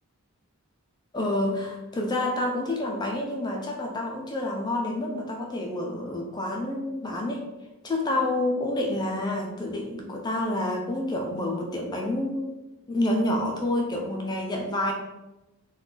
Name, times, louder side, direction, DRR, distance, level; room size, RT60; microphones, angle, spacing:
voice 1, 1.1-7.4 7.8-12.5 12.9-14.9, left 1 dB, 20° left, 1 dB, 0.3 m, -28 dB
2.4 x 2.3 x 3.6 m, 1.0 s
head